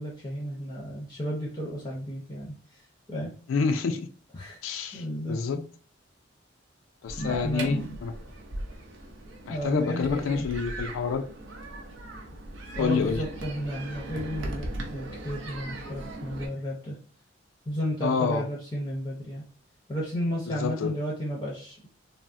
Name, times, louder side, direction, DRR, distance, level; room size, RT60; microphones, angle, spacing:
voice 1, 0.0-3.3 4.3-5.7 7.2-8.0 9.5-10.5 12.7-17.0 17.7-19.4 19.9-21.9, equal, 20° left, 0.6 m, -33 dB
voice 2, 3.5-4.1 4.6-5.0 5.3-5.6 7.0-8.1 9.5-11.2 12.8-13.2 18.0-18.5 20.5-20.9, left 5 dB, 90° left, 0.3 m, -28 dB
sound 1, 7.1-16.5, right 1 dB, 70° right, 0.6 m, -39 dB
3.3 x 2.0 x 2.5 m
head